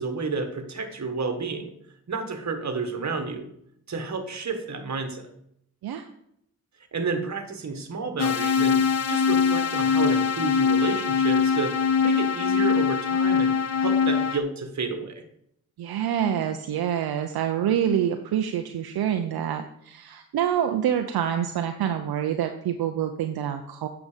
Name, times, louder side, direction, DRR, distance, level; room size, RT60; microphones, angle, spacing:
voice 1, 0.0-1.7 2.1-3.5 3.9-5.3 6.9-13.5 13.8-15.2, right 4 dB, 45° right, 6 dB, 1.6 m, -31 dB
sound 1, 8.2-14.4, left 6 dB, 45° left, 0.8 m, -22 dB
voice 2, 15.8-23.9, right 9 dB, 75° right, 6 dB, 0.7 m, -26 dB
8.2 x 5.9 x 5.1 m, 0.74 s
cardioid pair, 60°, 38 cm